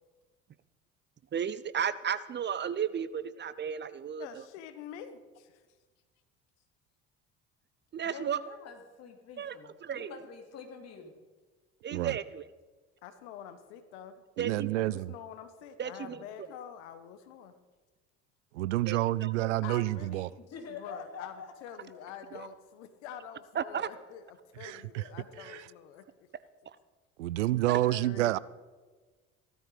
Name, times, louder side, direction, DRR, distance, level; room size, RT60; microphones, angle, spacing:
voice 1, 1.3-4.4 7.9-8.4 9.4-9.6 9.8-10.1 11.8-12.4 14.4-14.7 15.8-16.2 18.8-19.5 22.3-22.5 23.5-23.9 27.7-27.8, right 8 dB, 30° right, 0.6 m, -34 dB
voice 2, 4.2-5.6 13.0-14.2 14.8-17.5 19.6-26.3 27.9-28.4, left 9 dB, 70° left, 1.4 m, -47 dB
voice 3, 8.0-11.1 15.9-16.3 20.5-22.0 25.0-25.7, left 5 dB, 45° left, 2.9 m, -47 dB
voice 4, 14.4-15.1 18.5-20.3 24.6-25.0 25.5-25.6 27.2-28.4, right 16 dB, 80° right, 0.5 m, -29 dB
15.5 x 13.5 x 5.0 m
hypercardioid pair, 60°, 35 cm